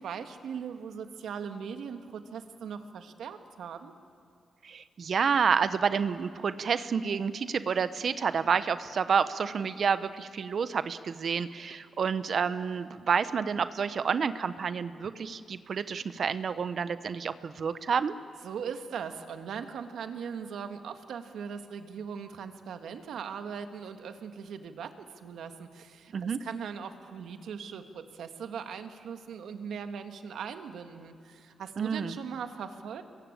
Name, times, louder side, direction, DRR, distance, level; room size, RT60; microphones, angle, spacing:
voice 1, 0.0-3.9 18.4-33.0, right 7 dB, 80° right, 7 dB, 1.6 m, -40 dB
voice 2, 4.6-18.1 26.1-26.4 31.8-32.2, right 6 dB, 60° right, 13 dB, 0.8 m, -29 dB
25.0 x 22.0 x 8.9 m, 2.5 s
cardioid pair, 65°, 0 cm